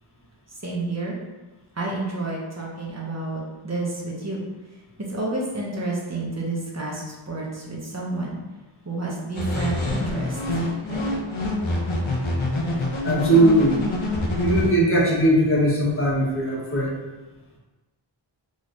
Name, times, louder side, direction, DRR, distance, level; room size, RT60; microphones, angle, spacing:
voice 1, 0.6-1.2 1.7-4.4 5.0-8.4 8.8-10.4 10.8-11.3, right 2 dB, 35° right, -3 dB, 1.0 m, -30 dB
sound 1, 9.3-14.7, left 1 dB, 90° left, 0.8 m, -26 dB
voice 2, 13.0-13.8 14.4-17.0, right 1 dB, 25° left, -5 dB, 1.1 m, -19 dB
3.9 x 3.1 x 2.5 m, 1.2 s
wide cardioid pair, 55°, 47 cm